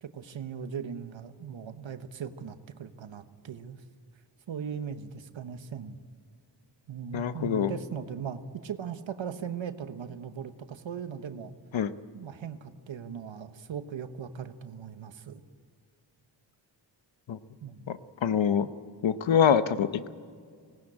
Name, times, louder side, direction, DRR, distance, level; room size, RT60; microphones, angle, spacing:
voice 1, 0.0-3.8 4.5-6.0 6.9-11.5 12.1-15.4 17.6-17.9, right 7 dB, 90° right, 10 dB, 1.1 m, -39 dB
voice 2, 7.1-7.7 11.7-11.9 17.3-17.4 17.9-18.7 19.0-20.1, left 8 dB, 85° left, 13 dB, 0.9 m, -25 dB
19.0 x 18.0 x 8.8 m, 2.1 s
cardioid pair, 60°, 45 cm